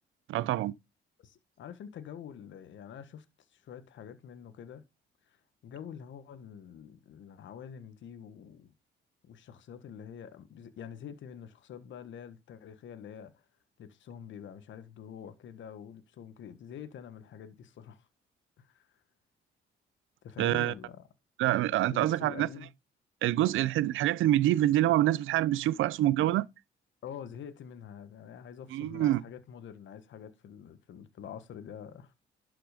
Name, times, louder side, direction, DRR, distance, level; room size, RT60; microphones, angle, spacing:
voice 1, 0.3-0.7 20.4-20.7 21.4-22.5 23.2-26.5 28.7-29.2, right 14 dB, 85° right, 0.7 m, -26 dB
voice 2, 1.2-4.8 5.3-5.4 5.6-8.7 9.2-13.4 13.8-18.1 18.6-18.9 20.2-21.0 21.9-22.7 27.0-32.2, left 8 dB, 70° left, 1.6 m, -46 dB
12.0 x 5.8 x 5.1 m
cardioid pair, 90°, 20 cm